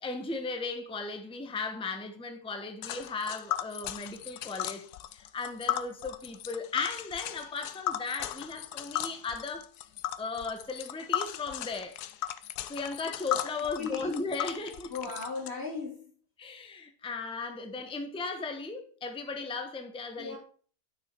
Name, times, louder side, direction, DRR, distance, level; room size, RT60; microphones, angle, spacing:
voice 1, 0.0-4.8 5.1-9.7 10.2-12.0 12.7-14.9 16.4-20.4, left 4 dB, 5° left, 0.8 m, -36 dB
Tick, 2.8-15.5, left 11 dB, 80° left, 1.2 m, -36 dB
voice 2, 13.8-14.1 14.9-16.1 20.2-20.4, left 4 dB, 40° left, 3.5 m, -37 dB
9.4 x 6.3 x 4.4 m
omnidirectional pair, 1.7 m